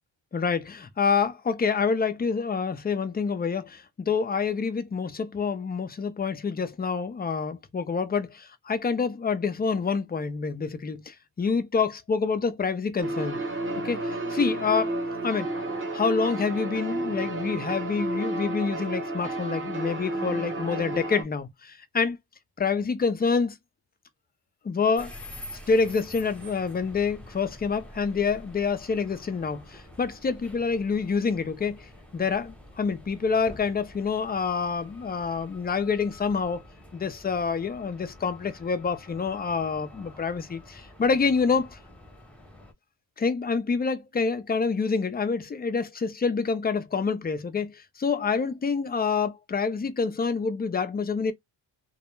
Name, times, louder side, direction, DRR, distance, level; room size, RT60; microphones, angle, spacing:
voice 1, 0.3-13.4 13.8-15.0 15.2-15.5 15.9-22.2 22.6-23.6 24.6-25.1 25.7-31.9 32.1-36.6 36.9-41.8 43.2-51.3, left 5 dB, 25° left, 0.3 m, -27 dB
sound 1, 13.0-21.2, right 2 dB, 25° right, 0.8 m, -31 dB
sound 2, 25.0-42.7, left 1 dB, 5° left, 0.7 m, -47 dB
2.2 x 2.1 x 3.0 m
cardioid pair, 105°, 47 cm